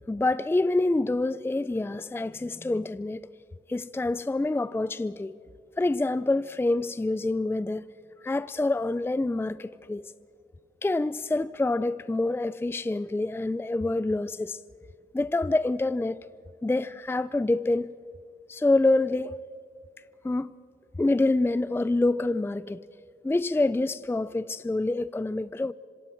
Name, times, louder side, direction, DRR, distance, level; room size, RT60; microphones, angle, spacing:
voice 1, 0.1-3.2 3.7-5.3 5.8-7.8 8.2-10.1 10.8-14.6 15.1-16.2 16.6-17.9 18.5-19.4 20.2-20.5 21.0-22.8 23.2-25.7, left 2 dB, 10° left, 0.5 m, -26 dB
26.0 x 26.0 x 4.6 m
cardioid pair, 70°, 20 cm